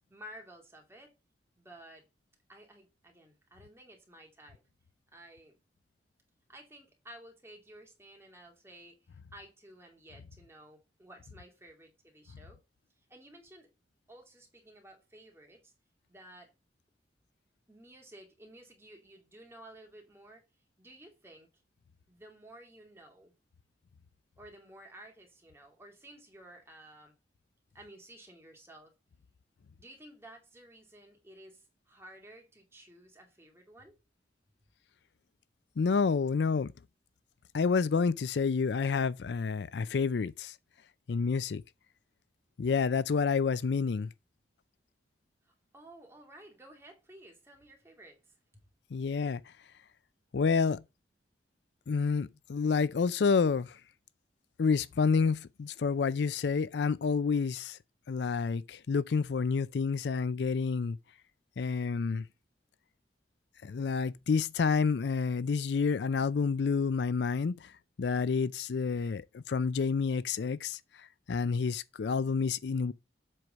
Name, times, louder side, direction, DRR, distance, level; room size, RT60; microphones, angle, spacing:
voice 1, 0.1-1.1 1.6-2.1 2.5-4.6 5.1-5.6 6.5-12.6 13.1-13.7 14.1-15.7 16.1-16.5 17.7-20.5 20.8-21.5 22.1-23.3 24.4-27.2 27.7-28.9 29.8-34.0 45.5-48.6, right 1 dB, 15° right, 2.5 m, -54 dB
voice 2, 35.8-36.7 37.5-40.5 41.1-41.6 42.6-44.1 48.9-49.4 50.3-50.8 51.9-53.8 54.6-57.8 58.1-61.0 61.6-62.2 63.6-67.7 68.0-72.9, left 5 dB, 70° left, 0.4 m, -29 dB
7.7 x 4.7 x 5.2 m
head